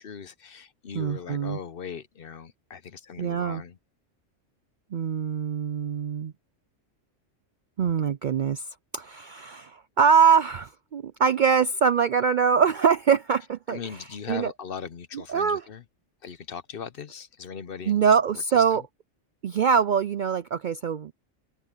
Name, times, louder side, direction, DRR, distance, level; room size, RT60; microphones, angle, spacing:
voice 1, 0.0-3.8 13.7-15.8 16.2-18.1 18.5-18.8, left 6 dB, 55° left, 0.9 m, -39 dB
voice 2, 1.0-1.6 3.2-3.6 4.9-6.3 7.8-8.6 8.9-13.8 14.3-14.5 15.3-15.6 17.9-18.8 19.4-21.1, right 6 dB, 60° right, 0.5 m, -23 dB
omnidirectional pair, 1.3 m